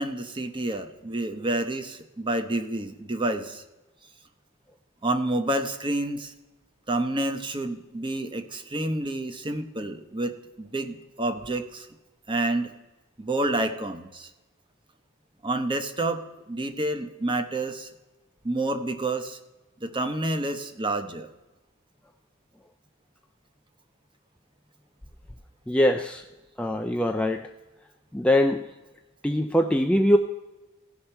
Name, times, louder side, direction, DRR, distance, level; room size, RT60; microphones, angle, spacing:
voice 1, 0.0-3.6 5.0-6.3 6.9-11.9 12.3-12.7 13.2-14.3 15.4-17.9 18.4-19.4 19.8-21.3, right 2 dB, 20° right, 8 dB, 0.8 m, -29 dB
voice 2, 25.7-26.2 26.6-27.5 28.1-28.6 29.2-30.2, left 1 dB, 5° left, 4 dB, 0.3 m, -22 dB
16.5 x 5.6 x 4.4 m, 1.1 s
head